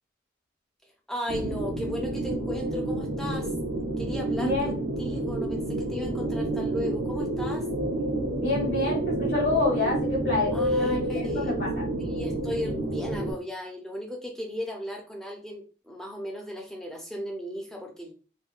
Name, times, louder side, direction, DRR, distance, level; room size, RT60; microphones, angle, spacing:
voice 1, 1.1-3.5 4.0-4.5 5.0-7.7 10.5-11.5 12.0-18.1, equal, 5° left, 1 dB, 0.5 m, -36 dB
sound 1, 1.3-13.3, right 1 dB, 80° right, 0.8 m, -29 dB
voice 2, 4.4-4.9 8.4-11.8, left 2 dB, 60° left, -1 dB, 1.7 m, -28 dB
3.6 x 2.7 x 2.4 m, 0.36 s
head